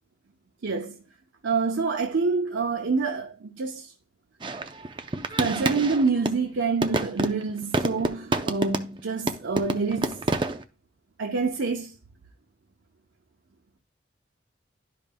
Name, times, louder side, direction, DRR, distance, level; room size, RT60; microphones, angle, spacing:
voice 1, 0.6-1.0 1.4-3.9 5.3-10.2 11.2-11.9, right 4 dB, 90° right, 0.7 m, -27 dB
sound 1, 4.4-6.4 6.8-9.0 9.3-10.6, right 2 dB, 25° right, 0.5 m, -27 dB
12.0 x 5.1 x 2.2 m
head